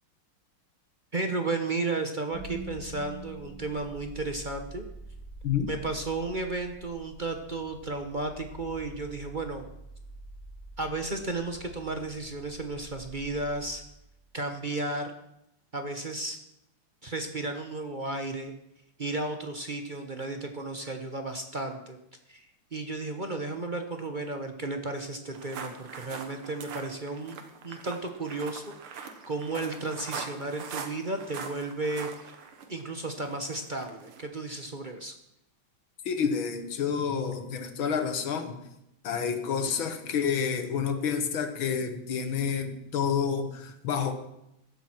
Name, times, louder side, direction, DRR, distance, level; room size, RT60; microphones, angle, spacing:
voice 1, 1.1-4.8 5.7-9.7 10.8-13.8 14.3-15.1 15.7-16.4 17.0-18.5 19.0-22.0 22.3-32.4 32.7-35.1, right 2 dB, 35° right, 5 dB, 0.8 m, -34 dB
sound 1, 2.3-14.4, right 1 dB, 50° left, 5.8 m, -46 dB
sound 2, 25.3-34.2, right 6 dB, 80° right, 2.2 m, -42 dB
voice 2, 36.1-38.7 39.0-44.1, left 6 dB, 70° left, 8 dB, 2.0 m, -29 dB
16.0 x 12.5 x 4.6 m, 0.83 s
omnidirectional pair, 2.4 m